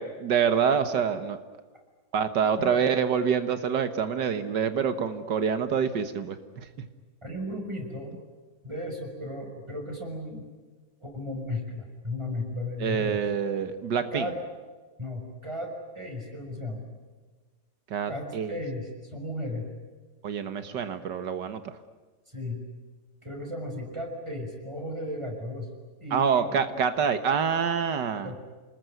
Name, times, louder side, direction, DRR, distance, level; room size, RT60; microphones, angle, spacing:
voice 1, 0.0-1.4 2.1-6.7 12.8-14.3 17.9-18.5 20.2-21.6 26.1-28.3, right 7 dB, 90° right, 10 dB, 2.0 m, -26 dB
voice 2, 7.2-8.2 8.6-10.5 11.0-13.2 14.1-14.4 15.0-16.9 18.1-19.7 22.3-22.6 23.2-25.7 26.0-26.6 28.2-28.4, left 1 dB, 15° right, 2 dB, 6.2 m, -35 dB
28.0 x 20.5 x 9.3 m, 1.4 s
omnidirectional pair, 1.8 m